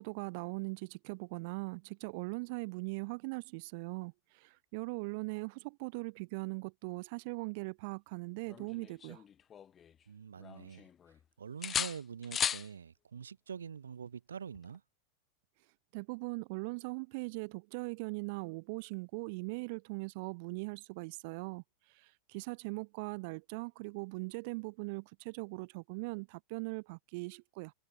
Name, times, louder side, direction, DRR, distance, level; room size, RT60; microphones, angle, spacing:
voice 1, 0.0-9.2 15.9-27.7, right 29 dB, 45° right, 5.0 m, -40 dB
sound 1, 8.5-10.0 10.4-11.2 11.6-12.7 14.5-14.8, left 8 dB, 25° left, 0.6 m, -37 dB
voice 2, 10.1-10.9 11.4-14.8, right 7 dB, 70° right, 7.3 m, -45 dB
figure-of-eight pair, 90°, 0 cm